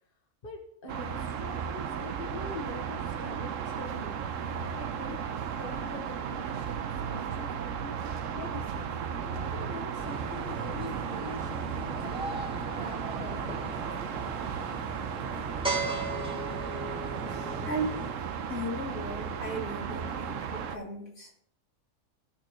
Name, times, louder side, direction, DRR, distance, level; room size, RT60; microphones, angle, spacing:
voice 1, 0.4-4.4 4.7-8.9 9.2-12.3 12.7-13.6, left 2 dB, 40° left, 0 dB, 1.6 m, -44 dB
sound 1, 0.9-20.8, right 7 dB, 70° right, 1.1 m, -35 dB
sound 2, 10.0-18.1, right 2 dB, 5° right, 1.2 m, -38 dB
voice 2, 17.6-18.0 18.5-21.4, right 1 dB, 70° left, -4 dB, 3.3 m, -36 dB
18.5 x 6.5 x 3.1 m, 0.70 s
omnidirectional pair, 1.5 m